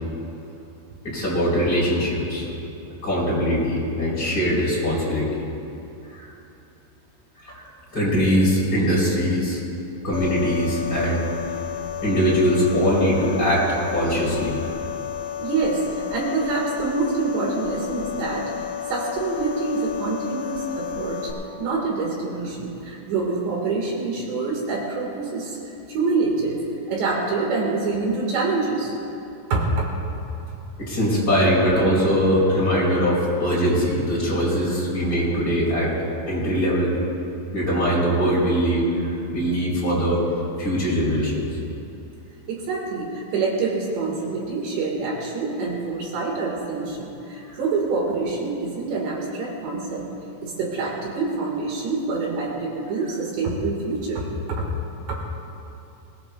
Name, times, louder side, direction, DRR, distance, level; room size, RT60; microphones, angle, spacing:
voice 1, 1.0-2.5 3.0-5.4 6.1-6.3 7.4-7.6 7.9-9.6 10.0-11.2 12.0-14.7 30.8-35.9 36.3-36.9 37.5-40.2 40.6-41.5 47.4-47.6, equal, 20° left, -7 dB, 4.1 m, -21 dB
sound 1, 10.1-21.3, left 9 dB, 60° left, 3.5 m, -32 dB
voice 2, 15.4-21.3 21.6-25.6 25.9-26.6 26.9-29.0 29.5-29.9 42.5-50.1 50.4-54.7 55.1-55.2, right 3 dB, 70° right, -2 dB, 3.6 m, -26 dB
22.0 x 18.5 x 2.3 m, 2.8 s
omnidirectional pair, 5.6 m